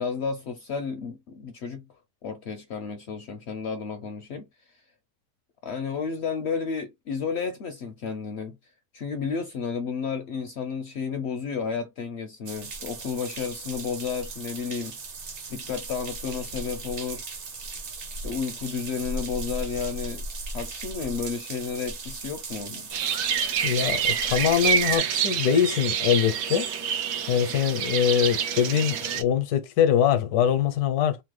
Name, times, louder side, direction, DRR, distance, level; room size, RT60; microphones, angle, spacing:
voice 1, 0.0-1.9 2.2-4.4 5.6-8.6 8.9-15.0 15.5-17.2 18.2-20.2 20.5-22.9, left 5 dB, 65° left, 0.6 m, -32 dB
sound 1, 12.5-25.0, right 3 dB, 50° right, 0.8 m, -37 dB
sound 2, 22.9-29.2, right 8 dB, 85° right, 1.2 m, -27 dB
voice 2, 23.6-26.7 27.3-31.2, left 9 dB, 80° left, 1.1 m, -23 dB
3.1 x 2.0 x 3.1 m
omnidirectional pair, 1.6 m